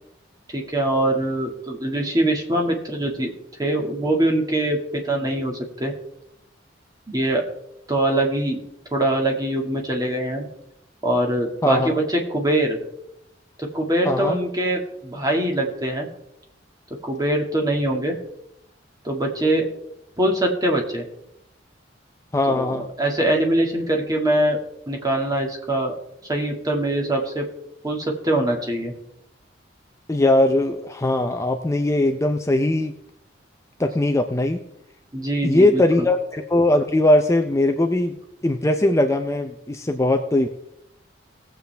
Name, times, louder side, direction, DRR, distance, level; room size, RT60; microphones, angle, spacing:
voice 1, 0.5-3.3 3.6-5.9 7.1-7.4 7.9-8.6 8.9-10.5 11.0-12.8 13.6-16.1 17.0-18.1 19.0-19.7 20.2-21.1 22.5-24.6 24.9-25.9 26.3-27.5 27.8-28.9 35.1-36.1, right 1 dB, 20° right, 1 dB, 2.0 m, -23 dB
voice 2, 14.1-14.4 22.3-22.9 30.1-32.9 33.8-34.6 35.4-38.1 38.4-40.5, left 1 dB, 15° left, 5 dB, 0.6 m, -20 dB
19.0 x 7.5 x 3.4 m, 0.81 s
head